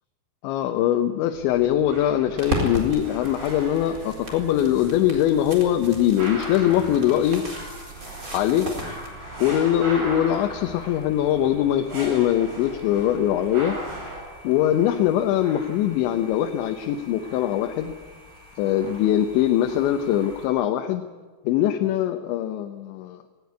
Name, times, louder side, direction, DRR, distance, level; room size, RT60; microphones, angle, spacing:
voice 1, 0.4-7.4 8.3-8.7 9.4-13.8 14.4-17.9 18.6-21.0 21.4-23.2, left 11 dB, 80° left, 6 dB, 3.2 m, -22 dB
sound 1, 1.3-14.2, right 2 dB, 55° right, 9.9 m, -38 dB
sound 2, 2.4-9.1, equal, 20° right, 3.9 m, -35 dB
sound 3, 7.1-20.5, left 1 dB, 5° left, 6.4 m, -46 dB
19.0 x 18.5 x 9.5 m, 1.4 s
omnidirectional pair, 5.4 m